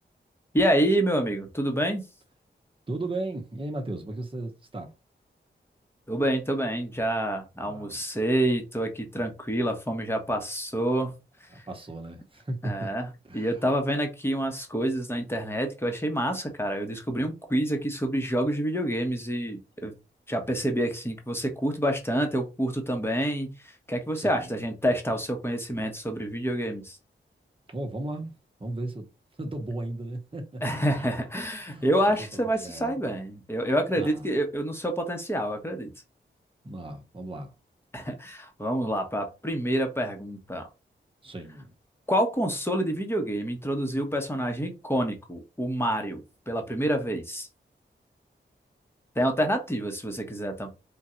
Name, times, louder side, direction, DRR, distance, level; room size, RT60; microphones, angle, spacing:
voice 1, 0.5-2.0 6.1-11.7 12.6-13.1 13.3-19.9 20.3-27.0 30.6-35.9 37.9-40.7 42.1-47.5 49.1-50.7, right 1 dB, 10° left, 1.2 m, -28 dB
voice 2, 2.9-4.9 7.6-7.9 11.5-12.9 13.2-13.5 24.1-24.5 27.7-28.3 28.6-29.1 29.4-30.6 31.0-31.1 31.6-33.0 33.9-34.3 36.6-37.5 41.2-41.7, right 2 dB, 30° right, 1.1 m, -36 dB
3.8 x 2.5 x 4.4 m
wide cardioid pair, 85°, 19 cm